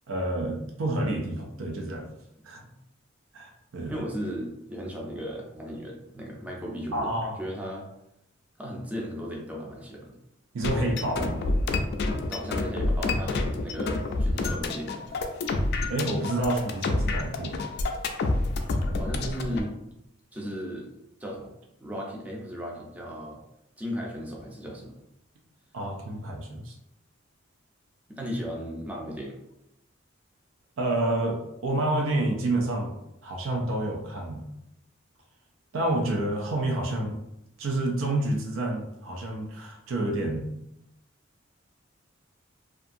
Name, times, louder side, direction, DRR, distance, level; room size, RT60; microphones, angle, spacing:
voice 1, 0.1-2.1 2.4-2.6 3.3-4.1 6.9-7.4 10.5-11.5 15.9-17.7 25.7-26.7 30.8-32.9 33.2-34.5 35.7-37.2 37.6-40.5, right 1 dB, 80° right, 0 dB, 0.5 m, -29 dB
voice 2, 3.9-7.1 7.4-7.9 8.6-10.1 12.3-15.0 19.0-19.8 20.3-20.9 21.2-21.5 21.8-23.4 23.8-24.9 28.1-29.4, equal, 10° right, -2 dB, 0.4 m, -36 dB
sound 1, 10.6-19.6, left 2 dB, 55° left, 0.3 m, -28 dB
2.7 x 2.4 x 2.5 m, 0.84 s
head